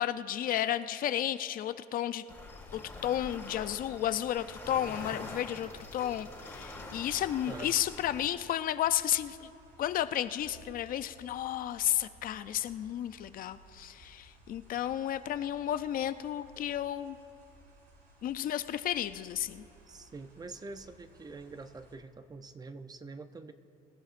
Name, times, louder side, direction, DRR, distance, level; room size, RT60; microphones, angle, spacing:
voice 1, 0.0-2.2 2.7-9.5 9.8-17.2 18.2-19.6, left 11 dB, 55° left, 12 dB, 0.5 m, -32 dB
sound 1, 2.3-8.3, left 2 dB, 10° left, 2.8 m, -45 dB
sound 2, 5.7-22.0, right 1 dB, 65° right, 3.7 m, -58 dB
voice 2, 7.4-7.8 19.9-23.5, right 3 dB, 25° right, 10 dB, 0.6 m, -45 dB
25.0 x 13.5 x 2.5 m, 2.8 s
cardioid pair, 110°, 17 cm